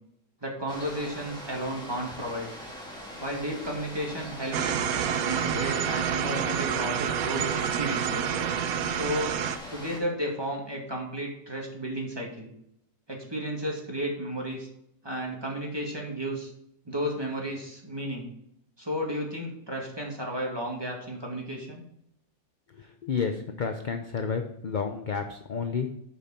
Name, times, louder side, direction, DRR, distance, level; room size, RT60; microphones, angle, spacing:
voice 1, 0.4-2.5 3.2-4.7 5.2-8.3 8.9-9.4 9.7-12.5 13.1-14.7 15.0-16.5 16.9-18.3 18.8-21.8, equal, 15° right, -1 dB, 2.2 m, -33 dB
sound 1, 0.7-10.0, equal, 5° left, 2.3 m, -42 dB
sound 2, 4.5-9.6, right 8 dB, 70° right, 1.1 m, -28 dB
voice 2, 22.8-25.9, left 5 dB, 50° left, 5 dB, 0.6 m, -31 dB
11.5 x 5.5 x 4.3 m, 0.76 s
omnidirectional pair, 1.7 m